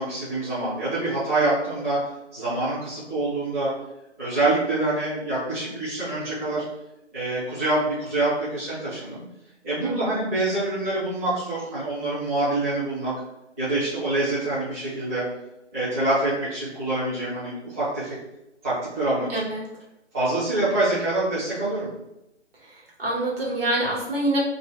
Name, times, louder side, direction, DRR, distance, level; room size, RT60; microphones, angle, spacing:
voice 1, 0.0-2.0 2.3-3.7 4.2-6.6 7.1-9.2 9.6-13.1 13.6-15.2 15.7-18.1 18.6-19.3 20.1-21.9, right 2 dB, 15° right, -12 dB, 0.6 m, -26 dB
voice 2, 19.3-19.6 22.6-22.7 23.0-24.4, right 1 dB, 55° right, -4 dB, 1.2 m, -26 dB
2.5 x 2.2 x 3.5 m, 0.88 s
figure-of-eight pair, 150°, 35 cm